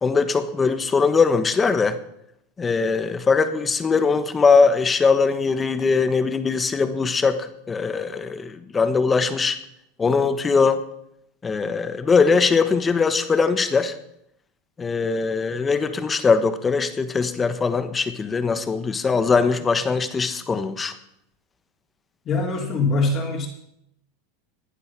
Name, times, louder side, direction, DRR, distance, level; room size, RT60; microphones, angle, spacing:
voice 1, 0.0-2.0 2.6-9.6 10.0-10.8 11.4-13.9 14.8-20.9, left 4 dB, 20° left, 11 dB, 1.3 m, -21 dB
voice 2, 22.2-23.5, left 3 dB, 35° left, -2 dB, 3.3 m, -23 dB
16.0 x 9.8 x 6.1 m, 0.77 s
supercardioid pair, 120°, 0 cm